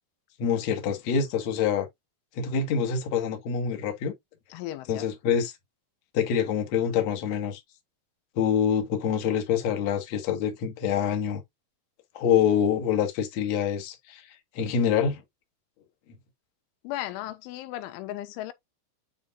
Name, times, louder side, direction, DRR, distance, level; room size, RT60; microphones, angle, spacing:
voice 1, 0.4-1.9 2.4-4.1 4.9-5.5 6.1-7.6 8.4-11.4 12.1-14.2 14.5-15.2, left 7 dB, 50° left, 2.1 m, -26 dB
voice 2, 4.5-5.1 16.8-18.5, left 14 dB, 90° left, 3.3 m, -36 dB
9.7 x 5.1 x 2.6 m
omnidirectional pair, 5.4 m